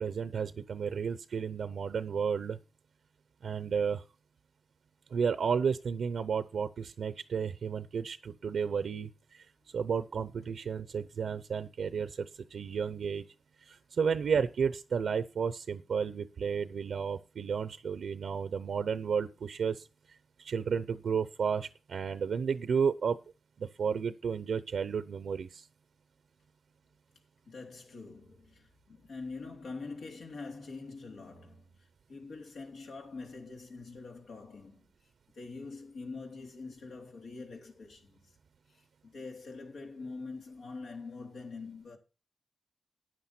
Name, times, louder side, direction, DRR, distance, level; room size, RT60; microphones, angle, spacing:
voice 1, 0.0-2.6 3.4-4.0 5.1-9.4 9.7-13.2 13.6-19.9 20.4-23.2 23.6-25.7, right 6 dB, 80° right, 0.7 m, -32 dB
voice 2, 27.4-38.4 38.7-42.0, left 3 dB, 90° left, 3.2 m, -45 dB
13.0 x 9.1 x 4.4 m
wide cardioid pair, 95°, 0 cm